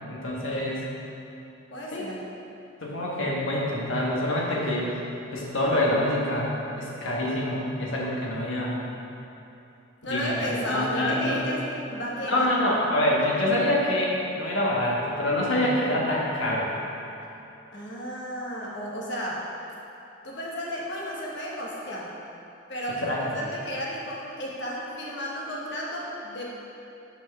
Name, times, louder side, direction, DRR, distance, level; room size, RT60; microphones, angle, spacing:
voice 1, 0.1-0.9 1.9-2.1 2.8-4.9 5.3-8.8 10.0-11.4 12.2-16.7 23.0-23.4, left 1 dB, 80° left, -4 dB, 1.3 m, -26 dB
voice 2, 1.7-2.2 10.0-11.6 11.9-12.5 15.5-15.6 17.7-19.5 20.2-22.1 22.7-26.5, equal, 65° left, -4 dB, 1.2 m, -33 dB
5.9 x 4.4 x 5.9 m, 2.9 s
head